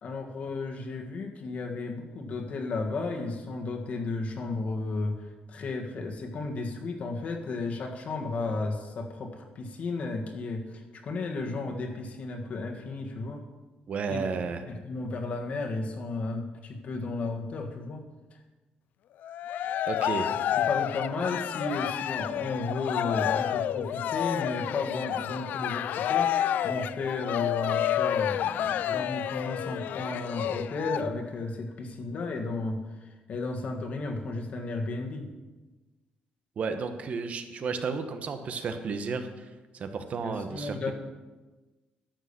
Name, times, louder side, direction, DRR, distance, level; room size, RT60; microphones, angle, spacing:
voice 1, 0.0-5.2 5.5-13.4 14.1-14.2 14.7-18.0 20.6-26.3 26.6-32.8 33.3-35.3 40.2-40.9, left 3 dB, 50° left, 3 dB, 1.7 m, -33 dB
voice 2, 13.9-14.6 19.9-20.3 36.6-39.5 39.7-40.9, right 5 dB, 45° right, 8 dB, 1.1 m, -32 dB
Cheering, 19.2-31.0, left 10 dB, 65° left, 0.4 m, -29 dB
12.0 x 6.5 x 7.0 m, 1.2 s
cardioid pair, 135°, 3 cm